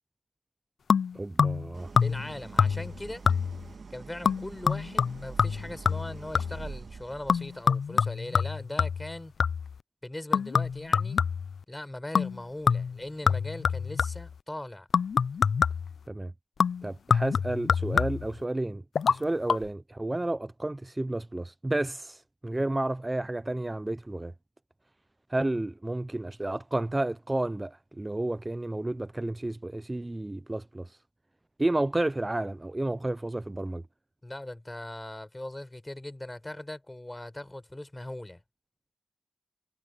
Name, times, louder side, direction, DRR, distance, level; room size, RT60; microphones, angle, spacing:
sound 1, 0.9-1.7 2.0-2.3 2.6-3.0 3.3-3.7 4.2-6.7 7.3-9.8 10.3-11.6 12.1-12.4 12.7-14.3 14.9-16.0 16.6-18.4 18.9-19.2 19.5-19.6, left 6 dB, 75° left, 0.4 m, -26 dB
voice 1, 1.1-1.9 16.1-16.3 16.8-18.8 19.1-24.3 25.3-31.0 31.6-33.8, right 2 dB, 20° right, 0.5 m, -31 dB
Idling, 1.7-7.8, right 4 dB, 60° right, 1.6 m, -45 dB
voice 2, 2.0-3.3 3.9-9.3 10.0-11.3 11.7-14.9 34.2-38.4, left 1 dB, 20° left, 4.7 m, -40 dB
cardioid pair, 50°, 0 cm